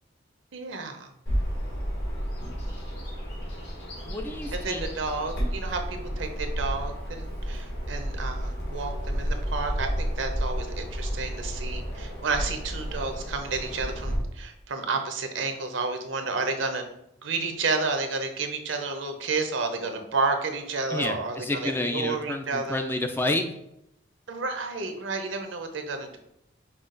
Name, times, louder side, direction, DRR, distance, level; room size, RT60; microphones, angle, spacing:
voice 1, 0.5-1.1 2.7-2.8 4.5-16.8 17.2-22.8 24.3-26.2, right 3 dB, 80° right, 5 dB, 0.7 m, -31 dB
Bird vocalization bird call bird song, 1.3-14.2, equal, 60° left, 1.6 m, -32 dB
voice 2, 4.1-4.9 20.9-23.4, left 2 dB, 10° left, 5 dB, 0.3 m, -29 dB
5.6 x 2.3 x 3.8 m, 0.80 s
head